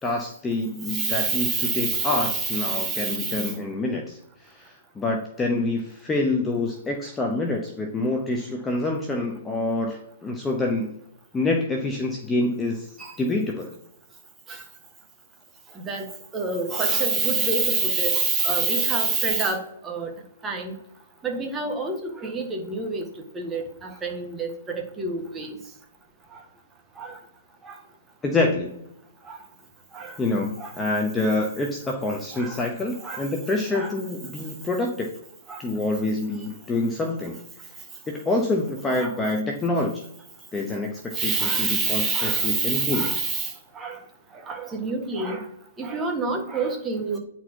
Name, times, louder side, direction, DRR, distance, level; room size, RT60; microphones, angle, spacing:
voice 1, 0.0-4.2 4.4-10.9 11.3-12.9 13.2-13.7 28.2-28.7 30.2-35.1 35.6-37.4 38.1-40.0 40.5-43.2, left 2 dB, 10° left, 2 dB, 0.8 m, -26 dB
voice 2, 0.9-3.5 13.0-13.1 14.5-14.6 15.9-20.1 20.4-20.7 21.2-23.0 23.3-25.5 27.0-27.2 27.6-27.7 29.3-29.4 29.9-30.1 30.6-30.7 32.3-32.6 33.0-33.2 33.7-33.9 35.5-35.6 39.0-39.1 41.1-44.0 44.5-45.4 45.8-47.2, right 4 dB, 10° right, 2 dB, 1.4 m, -27 dB
9.2 x 4.3 x 4.5 m, 0.79 s
hypercardioid pair, 155°, 0 cm